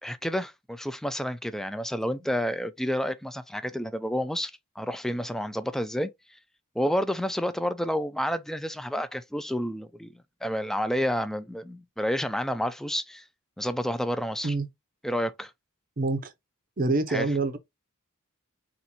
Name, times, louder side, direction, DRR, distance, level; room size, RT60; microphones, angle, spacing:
voice 1, 0.0-6.4 6.8-13.3 13.6-14.5 15.0-15.5 17.1-17.3, equal, ahead, 0.3 m, -30 dB
voice 2, 16.0-16.3 16.8-17.6, right 3 dB, 40° right, 0.7 m, -26 dB
4.2 x 2.6 x 4.1 m
head